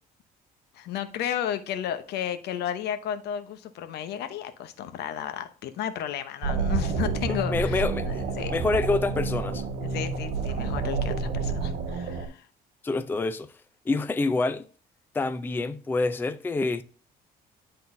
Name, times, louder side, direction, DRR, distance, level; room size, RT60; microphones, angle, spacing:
voice 1, 0.7-8.5 9.8-12.5, left 10 dB, 75° left, 0.8 m, -33 dB
sound 1, 6.4-12.3, right 4 dB, 75° right, 1.3 m, -29 dB
voice 2, 7.3-8.2 8.5-9.6 12.8-13.5 13.9-14.6 15.1-16.8, left 3 dB, 10° left, 0.4 m, -27 dB
11.5 x 3.9 x 2.6 m
cardioid pair, 110°, 17 cm